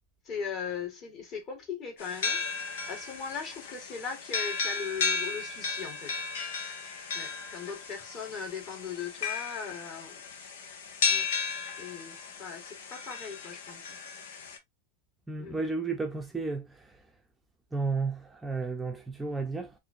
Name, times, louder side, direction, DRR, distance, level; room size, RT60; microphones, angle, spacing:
voice 1, 0.2-2.4 2.9-6.1 7.1-10.2 11.1-11.3 11.8-14.0 15.4-15.7, left 6 dB, 40° left, 2.1 m, -39 dB
sound 1, 2.0-14.6, left 5 dB, 80° left, 1.0 m, -34 dB
voice 2, 15.3-16.7 17.7-19.7, right 4 dB, 10° right, 0.6 m, -32 dB
4.1 x 2.7 x 2.7 m
supercardioid pair, 125°, 0 cm